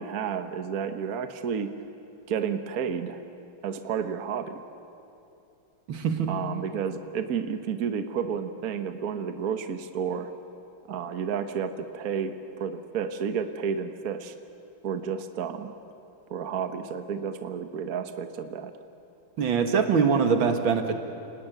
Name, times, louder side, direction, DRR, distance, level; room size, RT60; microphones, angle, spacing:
voice 1, 0.0-1.7 2.3-3.2 3.6-4.6 6.2-10.3 10.9-14.3 14.8-15.7 16.3-18.7, right 7 dB, 50° right, 8 dB, 1.5 m, -31 dB
voice 2, 5.9-6.3 19.4-21.0, right 6 dB, 85° right, 6 dB, 2.4 m, -23 dB
29.5 x 19.0 x 9.1 m, 2.8 s
omnidirectional pair, 2.1 m